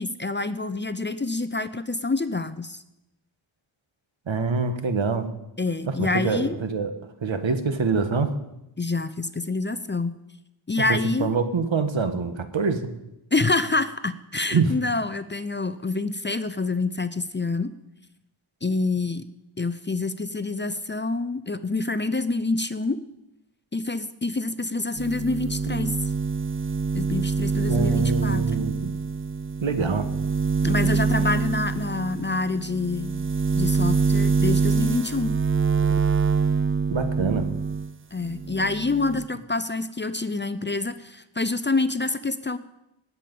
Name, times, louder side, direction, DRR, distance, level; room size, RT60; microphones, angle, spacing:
voice 1, 0.0-2.8 5.6-6.6 8.8-10.2 10.7-11.4 13.3-17.7 18.6-19.2 19.6-23.0 23.7-26.0 26.9-28.4 30.6-33.1 33.5-35.3 38.1-42.6, left 3 dB, 25° left, 13 dB, 0.6 m, -27 dB
voice 2, 4.3-5.2 6.0-6.9 7.2-8.3 10.9-12.8 14.5-14.7 27.7-28.9 29.6-30.1 36.9-37.4, right 4 dB, 75° right, 8 dB, 1.5 m, -25 dB
sound 1, 25.0-37.9 38.3-39.3, right 5 dB, 30° right, 0.4 m, -25 dB
19.0 x 8.5 x 5.4 m, 0.89 s
wide cardioid pair, 80°, 47 cm